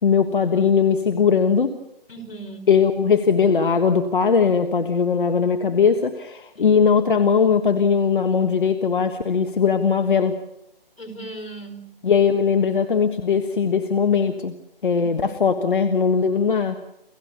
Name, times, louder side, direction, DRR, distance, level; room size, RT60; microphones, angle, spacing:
voice 1, 0.0-1.7 2.7-10.4 12.0-14.5 14.8-16.8, left 6 dB, 60° left, 8 dB, 1.5 m, -19 dB
voice 2, 2.1-2.7 6.6-6.9 11.0-11.8 15.2-15.4, right 2 dB, 85° left, 5 dB, 5.2 m, -37 dB
29.0 x 15.0 x 7.0 m, 0.86 s
figure-of-eight pair, 160°, 29 cm